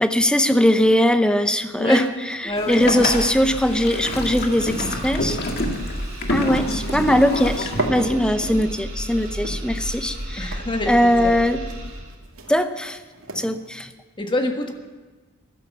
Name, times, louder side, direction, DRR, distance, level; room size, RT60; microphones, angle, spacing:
voice 1, 0.0-5.4 6.3-10.6 10.9-11.6 12.5-13.0 13.4-13.9, equal, 5° left, 9 dB, 0.7 m, -20 dB
voice 2, 1.8-2.1 2.5-2.8 10.4-11.3 14.2-14.7, left 1 dB, 25° left, 4 dB, 1.5 m, -25 dB
sound 1, 1.9-2.4 2.7-13.9, right 2 dB, 80° right, 2.4 m, -36 dB
sound 2, 2.5-12.2, right 1 dB, 45° right, 3.4 m, -33 dB
Boat Water vehicle, 2.6-7.9, left 1 dB, 50° left, 2.1 m, -28 dB
15.0 x 12.5 x 7.3 m, 1.3 s
head